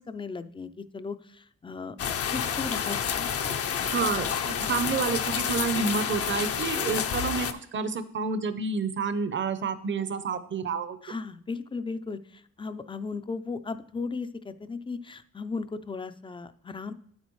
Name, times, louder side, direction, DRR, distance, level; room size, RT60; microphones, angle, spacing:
voice 1, 0.0-2.0 2.3-3.3 3.8-4.1 11.0-12.2 12.6-16.9, left 4 dB, 15° left, 11 dB, 0.5 m, -36 dB
sound 1, 2.0-7.5, left 7 dB, 50° left, 0.7 m, -29 dB
voice 2, 3.8-11.0, right 5 dB, 40° right, 12 dB, 0.8 m, -29 dB
8.8 x 8.3 x 3.1 m, 0.65 s
cardioid pair, 90°, 30 cm